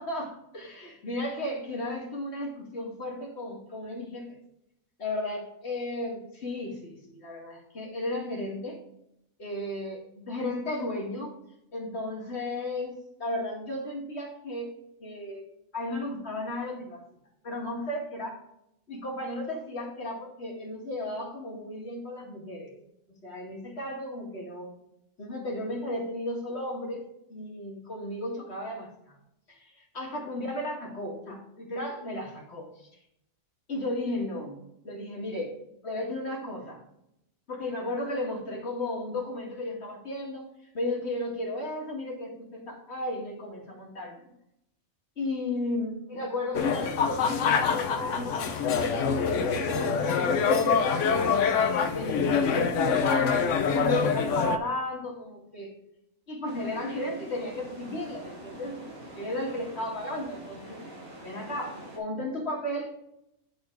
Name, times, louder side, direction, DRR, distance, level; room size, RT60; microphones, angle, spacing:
voice 1, 0.0-4.4 5.0-8.8 9.4-11.4 11.7-14.7 15.0-17.0 17.4-18.4 18.9-22.8 23.2-24.7 25.2-27.0 27.3-29.2 29.5-32.9 33.7-35.5 35.8-36.8 37.5-44.3 45.2-51.3 51.9-53.4 53.7-55.7 56.3-60.8 61.2-63.0, left 1 dB, 50° left, -1 dB, 2.5 m, -34 dB
sound 1, 46.5-54.6, left 5 dB, 65° left, 1.0 m, -25 dB
sound 2, 56.5-62.0, equal, 65° right, 3.4 m, -45 dB
10.5 x 4.3 x 4.6 m, 0.81 s
omnidirectional pair, 1.5 m